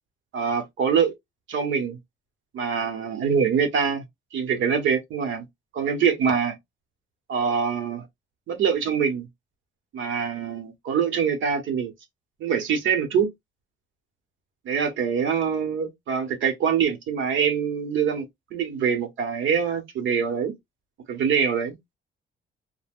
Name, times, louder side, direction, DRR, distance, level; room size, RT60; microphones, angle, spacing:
voice 1, 0.3-1.1 1.5-2.0 2.5-4.0 4.3-5.5 5.7-6.6 7.3-8.0 8.5-9.3 9.9-11.9 12.4-13.3 14.6-18.3 18.5-20.5 21.1-21.8, right 7 dB, 75° right, 0.9 m, -24 dB
2.3 x 2.1 x 3.4 m
cardioid pair, 90°, 20 cm